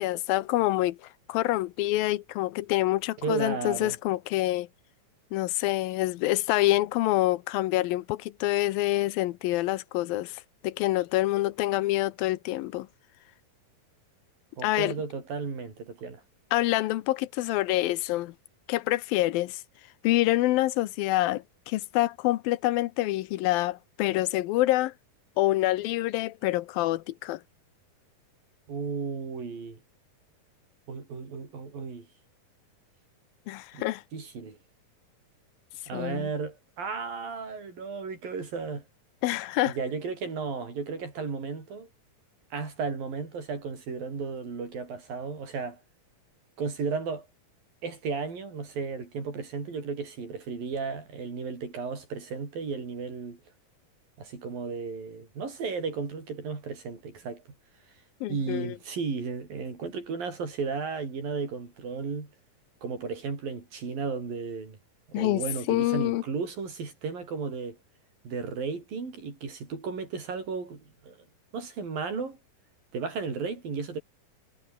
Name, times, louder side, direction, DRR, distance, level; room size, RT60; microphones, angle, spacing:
voice 1, 0.0-4.7 5.3-12.9 14.6-14.9 16.5-18.4 18.7-19.6 20.0-24.9 25.4-27.4 33.5-34.0 35.9-36.3 39.2-39.8 58.2-58.7 65.1-65.4 65.7-66.2, left 17 dB, 85° left, 2.7 m, -26 dB
voice 2, 3.2-4.0 14.6-16.2 28.7-29.8 30.9-32.1 33.7-34.6 35.9-38.8 39.7-41.9 42.5-45.8 46.6-47.3 47.8-53.4 54.2-57.4 58.3-62.3 62.8-64.8 65.1-67.8 68.2-71.2 71.5-72.4 72.9-74.0, right 5 dB, 75° right, 7.6 m, -34 dB
omnidirectional pair, 4.0 m